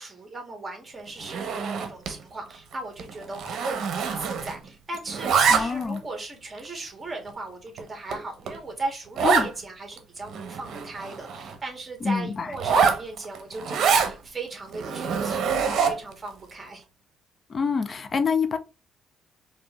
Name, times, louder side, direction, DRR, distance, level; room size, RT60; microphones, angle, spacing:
voice 1, 0.0-16.8, right 2 dB, 25° right, 1.8 m, -37 dB
Zipper (clothing), 1.2-2.2 2.5-2.7 3.0-4.7 4.9-6.0 6.6-6.7 7.3-7.4 7.8-7.9 8.1-8.2 8.5-8.6 9.2-9.5 10.0-10.1 10.3-11.6 12.5-14.1 14.7-16.1, right 6 dB, 70° right, 0.8 m, -25 dB
voice 2, 5.5-6.0 9.2-9.5 12.0-12.5 17.5-18.6, left 5 dB, 40° left, 0.6 m, -26 dB
4.3 x 2.8 x 3.1 m
cardioid pair, 90°, 0 cm